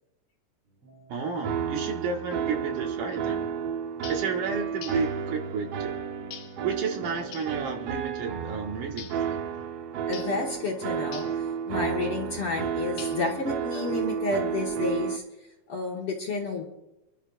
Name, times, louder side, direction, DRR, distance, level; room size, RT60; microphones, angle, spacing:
sound 1, 0.6-12.9, right 2 dB, 45° right, 7.6 m, -56 dB
voice 1, 1.1-3.5 4.1-5.9 6.6-9.5, right 5 dB, 70° right, 2 dB, 2.9 m, -32 dB
sound 2, 1.4-15.2, right 8 dB, 90° right, 1.3 m, -32 dB
sound 3, 4.0-4.3 4.8-5.1 6.3-6.6 7.3-7.6 9.0-9.3 10.1-10.4 11.1-11.4 13.0-13.4, left 8 dB, 85° left, 1.4 m, -43 dB
voice 2, 10.1-15.2 15.7-16.6, left 3 dB, 55° left, -1 dB, 1.8 m, -31 dB
28.5 x 11.5 x 2.4 m, 0.94 s
omnidirectional pair, 4.0 m